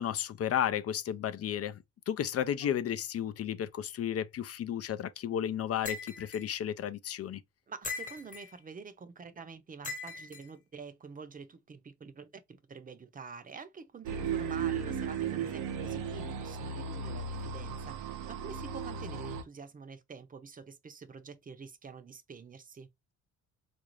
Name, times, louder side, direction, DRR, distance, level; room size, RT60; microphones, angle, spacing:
voice 1, 0.0-1.8 2.1-7.4, left 10 dB, 50° left, 0.5 m, -33 dB
sound 1, 5.8-6.4 7.8-8.5 9.8-10.4, left 3 dB, 25° left, 1.1 m, -40 dB
voice 2, 7.7-22.9, right 5 dB, 30° right, 0.7 m, -47 dB
sound 2, 14.0-19.4, right 6 dB, 85° right, 0.7 m, -35 dB
3.7 x 2.6 x 3.0 m
cardioid pair, 90°, 30 cm